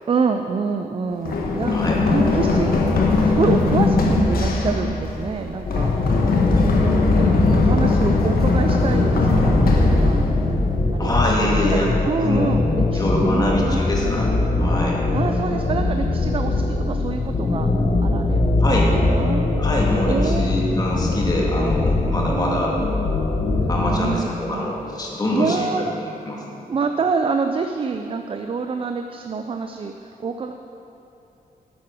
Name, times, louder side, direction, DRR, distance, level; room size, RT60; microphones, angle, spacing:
voice 1, 0.1-2.8 3.1-5.9 6.8-10.2 10.9-11.2 11.6-13.8 15.1-17.7 18.0-19.4 20.1-20.5 21.5-22.9 23.9-24.7 25.3-25.9 26.7-30.5, right 5 dB, 35° right, 6 dB, 0.5 m, -27 dB
Run, 1.3-11.0, left 3 dB, 80° left, 1.4 m, -20 dB
sound 1, 5.7-24.1, left 2 dB, 45° left, 1.2 m, -21 dB
voice 2, 7.4-7.8 11.0-12.5 12.9-14.3 14.6-15.0 18.6-18.9 19.6-22.7 23.7-25.7 26.0-26.6, left 1 dB, 25° left, -3 dB, 2.0 m, -24 dB
11.0 x 9.2 x 6.1 m, 2.8 s
wide cardioid pair, 155°, 15 cm